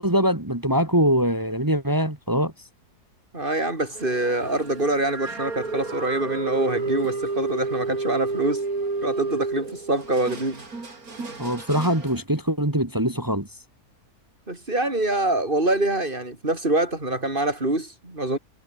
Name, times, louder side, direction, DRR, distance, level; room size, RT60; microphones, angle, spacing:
voice 1, 0.0-2.5 11.4-13.5, equal, 15° right, 2.3 m, -23 dB
voice 2, 3.3-8.6 9.0-10.6 14.5-18.4, right 2 dB, 35° right, 5.8 m, -25 dB
sound 1, 3.9-12.2, right 3 dB, 75° right, 4.2 m, -31 dB
omnidirectional pair, 1.6 m